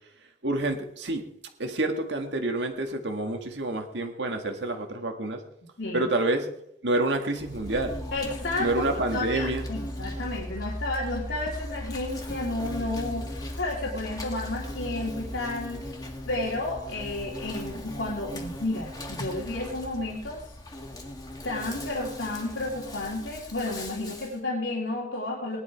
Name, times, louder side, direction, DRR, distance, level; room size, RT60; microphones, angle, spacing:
voice 1, 0.4-1.2 1.6-5.4 5.9-6.5 6.8-7.9 8.6-9.6, right 2 dB, 70° right, 4 dB, 1.8 m, -28 dB
Insect, 7.3-24.4, left 1 dB, 20° left, 2.0 m, -37 dB
voice 2, 8.1-8.9 9.1-15.8 16.3-20.4 21.4-25.6, left 2 dB, 80° left, -4 dB, 2.5 m, -32 dB
18.5 x 11.0 x 4.6 m, 0.77 s
head